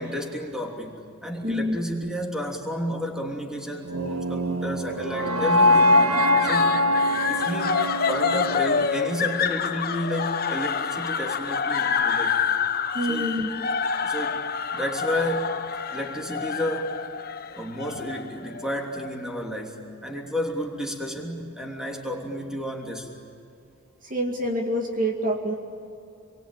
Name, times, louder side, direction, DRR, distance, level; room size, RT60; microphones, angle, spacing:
voice 1, 0.0-6.0 6.4-6.9 7.2-12.4 13.1-13.3 14.0-17.0 17.5-23.1, equal, 5° right, 0 dB, 3.1 m, -31 dB
voice 2, 1.4-1.8 12.9-13.5 24.0-25.5, equal, 40° right, 2 dB, 2.4 m, -26 dB
sound 1, 3.8-10.0, left 1 dB, 80° right, 2.0 m, -23 dB
sound 2, 5.9-19.1, left 6 dB, 45° left, 1.0 m, -27 dB
28.0 x 23.0 x 9.0 m, 2.7 s
head